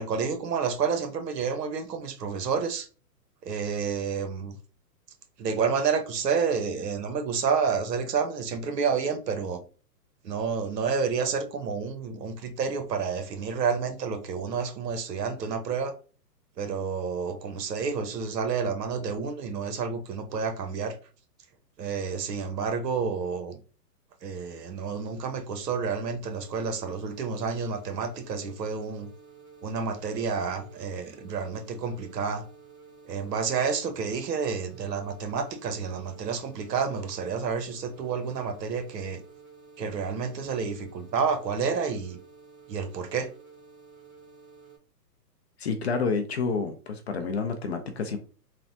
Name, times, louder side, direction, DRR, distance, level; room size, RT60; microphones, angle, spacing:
voice 1, 0.0-2.9 3.4-4.6 5.4-9.6 10.2-15.9 16.6-21.0 21.8-23.6 24.2-29.1 29.6-32.4 33.0-39.2 39.8-42.2 42.7-43.3, right 5 dB, 75° right, 0.9 m, -29 dB
sound 1, 26.2-44.8, right 5 dB, 25° right, 1.0 m, -52 dB
voice 2, 45.6-48.2, left 4 dB, 45° left, 0.4 m, -29 dB
3.3 x 2.0 x 2.6 m
hypercardioid pair, 140°, 50 cm